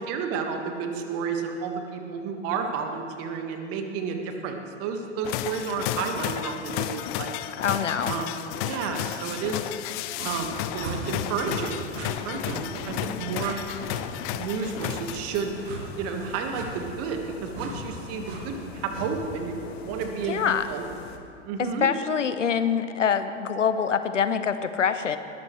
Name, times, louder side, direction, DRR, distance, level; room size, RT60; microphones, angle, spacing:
voice 1, 0.0-7.3 8.0-8.4 8.6-9.7 10.2-13.6 14.3-15.5 16.0-20.8 21.4-21.9, right 5 dB, 40° right, 4 dB, 1.5 m, -31 dB
sound 1, 5.2-15.7, left 14 dB, 30° left, 0.4 m, -33 dB
voice 2, 7.6-8.1 20.3-20.7 21.6-25.2, left 7 dB, 80° left, 11 dB, 0.8 m, -25 dB
sound 2, 10.1-10.3 10.8-11.0 11.4-11.6 11.9-12.1 12.4-12.6 12.9-13.1 13.4-13.5 13.9-14.1 14.8-14.9 15.6-15.8 16.5-16.7 17.5-17.7 18.2-18.4 18.9-19.1, right 4 dB, 60° right, 2.3 m, -37 dB
sound 3, 10.3-21.2, left 5 dB, 55° left, 1.2 m, -44 dB
20.5 x 13.0 x 3.2 m, 2.5 s
figure-of-eight pair, 90°, 37 cm